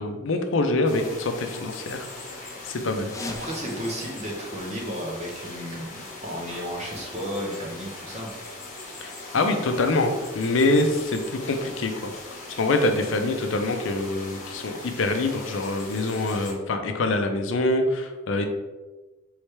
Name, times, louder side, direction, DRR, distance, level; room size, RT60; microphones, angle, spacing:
voice 1, 0.0-2.1 2.7-3.1 9.0-11.9 12.6-18.5, left 2 dB, 70° left, 6 dB, 0.5 m, -25 dB
sound 1, 0.8-16.5, left 2 dB, 40° left, 1.3 m, -40 dB
sound 2, 3.0-5.6, left 2 dB, 15° left, 0.4 m, -41 dB
voice 2, 3.3-8.4, equal, 35° right, -2 dB, 1.0 m, -33 dB
4.7 x 3.2 x 3.3 m, 1.2 s
head